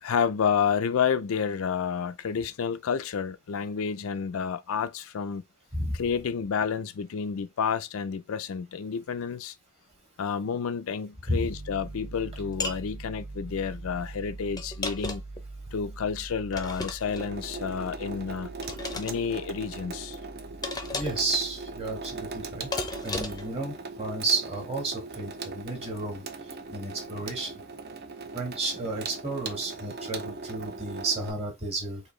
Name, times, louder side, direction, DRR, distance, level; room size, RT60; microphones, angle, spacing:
voice 1, 0.0-5.4 5.9-9.5 10.2-15.2 15.7-18.5 18.9-20.2, left 6 dB, 75° left, 0.4 m, -30 dB
Piano, 11.5-22.8, right 2 dB, 65° right, 1.6 m, -43 dB
sound 1, 12.6-12.8 14.6-15.4 16.5-17.3 18.6-19.2 20.6-21.3 22.7-23.5, left 3 dB, 20° left, 0.6 m, -34 dB
Water tap faucet / Sink (filling or washing), 17.1-31.3, right 3 dB, 45° right, 0.6 m, -39 dB
voice 2, 20.9-22.7 23.0-26.2 26.7-27.5 28.3-32.0, right 2 dB, 30° right, 1.5 m, -32 dB
4.3 x 2.8 x 3.1 m
head